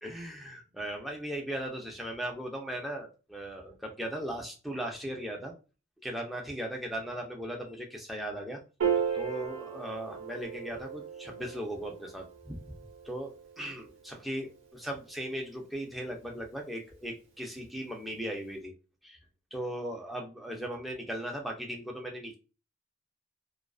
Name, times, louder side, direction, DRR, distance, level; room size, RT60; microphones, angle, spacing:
voice 1, 0.0-5.5 6.0-8.6 9.1-12.7 13.0-18.7 19.0-19.2 19.5-22.3, right 1 dB, ahead, 0 dB, 0.4 m, -38 dB
Piano, 8.8-15.4, right 7 dB, 85° right, 0.8 m, -36 dB
2.4 x 2.3 x 2.3 m, 0.33 s
head